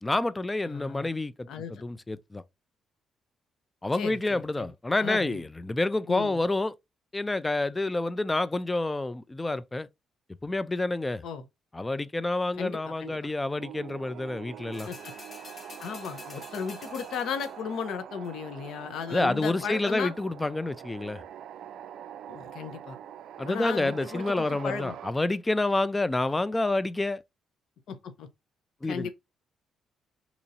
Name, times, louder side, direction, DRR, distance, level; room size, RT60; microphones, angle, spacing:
voice 1, 0.0-2.4 3.8-6.7 7.1-9.9 10.4-11.2 11.7-14.9 19.1-21.2 23.4-27.2 28.8-29.1, left 2 dB, 15° left, 0.3 m, -28 dB
voice 2, 0.7-1.1 1.5-1.8 3.9-4.7 5.0-5.4 6.1-6.4 11.2-11.4 12.6-13.3 14.9-15.1 15.8-20.1 22.3-23.0 23.5-24.9 27.9-28.3 28.8-29.1, left 6 dB, 75° left, 0.7 m, -35 dB
sound 1, 13.6-25.1, right 10 dB, 75° right, 0.3 m, -44 dB
sound 2, 14.7-17.8 18.2-18.3, left 3 dB, 40° left, 0.7 m, -48 dB
2.9 x 2.6 x 4.0 m
cardioid pair, 90°, 0 cm